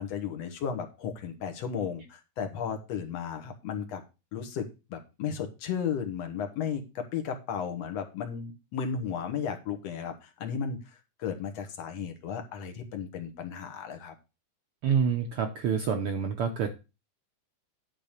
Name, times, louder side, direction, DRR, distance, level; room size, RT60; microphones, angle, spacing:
voice 1, 0.0-4.0 4.3-10.8 11.2-14.1, left 7 dB, 65° left, 6 dB, 2.3 m, -34 dB
voice 2, 14.8-16.7, right 6 dB, 70° right, 4 dB, 1.3 m, -27 dB
10.5 x 4.0 x 6.6 m, 0.29 s
omnidirectional pair, 3.4 m